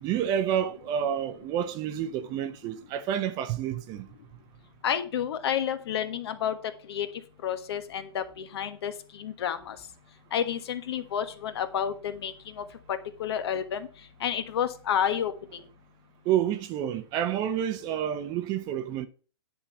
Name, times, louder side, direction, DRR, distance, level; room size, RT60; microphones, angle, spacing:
voice 1, 0.0-4.1 16.3-19.1, right 10 dB, 30° right, 0.7 m, -29 dB
voice 2, 4.8-6.6 6.9-7.1 7.4-9.8 10.3-13.9 14.2-15.6, left 9 dB, 65° left, 1.4 m, -30 dB
10.0 x 3.7 x 6.8 m
hypercardioid pair, 145°, 14 cm